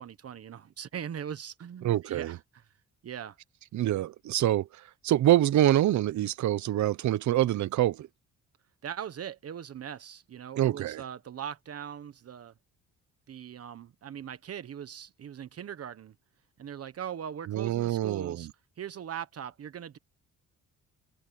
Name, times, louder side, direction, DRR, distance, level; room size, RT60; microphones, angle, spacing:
voice 1, 0.0-2.6 3.0-3.4 8.8-12.5 13.3-16.1 16.6-18.5 18.8-20.0, right 9 dB, 50° right, 1.3 m, -40 dB
voice 2, 1.8-2.4 3.7-8.1 10.6-11.0 17.5-18.5, right 13 dB, 70° right, 1.0 m, -26 dB
open air
cardioid pair, 90°, 30 cm